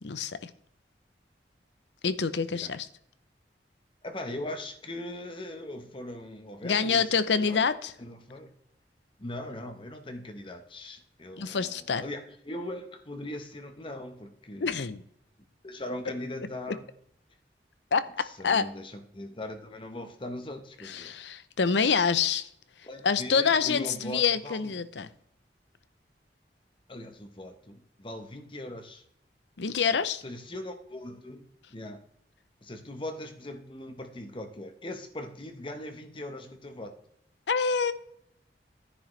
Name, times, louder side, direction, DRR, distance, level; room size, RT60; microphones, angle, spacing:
voice 1, 0.0-0.5 2.0-2.9 6.6-7.9 11.4-12.0 14.6-15.0 17.9-18.7 20.8-22.5 23.0-25.1 29.6-30.2 37.5-37.9, left 5 dB, 90° left, 0.7 m, -26 dB
voice 2, 4.0-7.6 8.0-8.5 9.2-14.9 15.6-16.9 18.2-21.1 22.8-24.7 26.9-29.0 30.2-32.0 32.6-36.9, left 1 dB, 30° left, 1.1 m, -40 dB
10.5 x 10.0 x 3.3 m
head